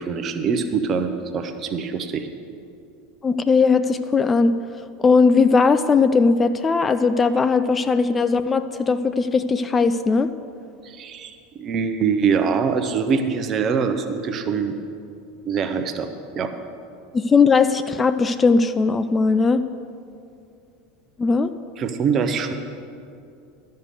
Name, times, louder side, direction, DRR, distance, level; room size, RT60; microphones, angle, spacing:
voice 1, 0.0-2.3 10.8-14.7 15.4-16.5 21.8-22.5, right 6 dB, 35° right, 8 dB, 0.8 m, -24 dB
voice 2, 3.2-4.6 5.0-10.3 17.1-19.6 21.2-21.5, left 4 dB, 20° left, 11 dB, 0.4 m, -18 dB
12.0 x 6.7 x 6.7 m, 2.5 s
figure-of-eight pair, 75°, 0 cm